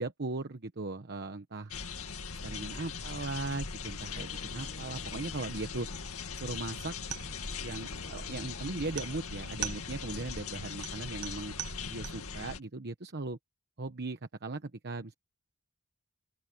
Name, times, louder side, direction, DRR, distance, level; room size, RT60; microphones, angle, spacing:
voice 1, 0.0-1.7 2.4-5.9 6.3-6.9 7.6-11.5 11.9-13.4 13.8-15.1, right 3 dB, 50° right, 1.1 m, -38 dB
sound 1, 1.7-12.6, left 5 dB, 75° left, 2.1 m, -40 dB
Harp, 4.1-9.5, left 2 dB, 40° left, 3.7 m, -57 dB
sound 2, 7.0-12.4, right 10 dB, 90° right, 0.9 m, -44 dB
open air
head